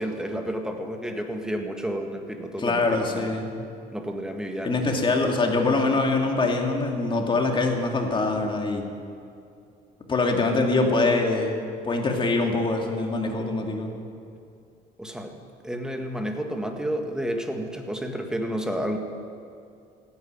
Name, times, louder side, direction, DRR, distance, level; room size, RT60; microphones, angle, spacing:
voice 1, 0.0-3.3 3.9-5.0 15.0-19.0, equal, 5° right, 4 dB, 1.8 m, -31 dB
voice 2, 2.6-3.5 4.6-8.9 10.1-11.5 11.8-13.9, left 3 dB, 30° left, 2 dB, 2.5 m, -24 dB
16.0 x 9.6 x 8.9 m, 2.5 s
cardioid pair, 110°, 17 cm